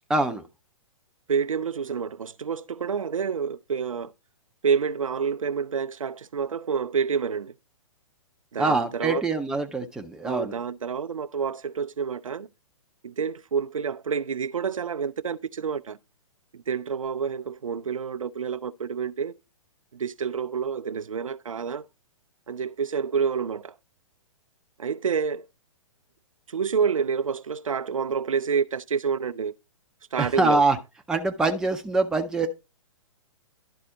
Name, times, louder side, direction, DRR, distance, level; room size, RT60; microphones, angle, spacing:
voice 1, 0.1-0.4 8.6-10.5 30.2-30.8 31.1-32.5, right 3 dB, 5° right, 0.5 m, -24 dB
voice 2, 1.3-4.1 4.6-7.5 8.5-9.2 10.2-12.5 13.0-16.0 16.5-19.3 19.9-21.9 22.5-23.7 24.8-25.5 26.5-29.5 30.1-30.6, right 6 dB, 75° right, 0.4 m, -28 dB
11.5 x 4.1 x 3.7 m
figure-of-eight pair, 115°, 17 cm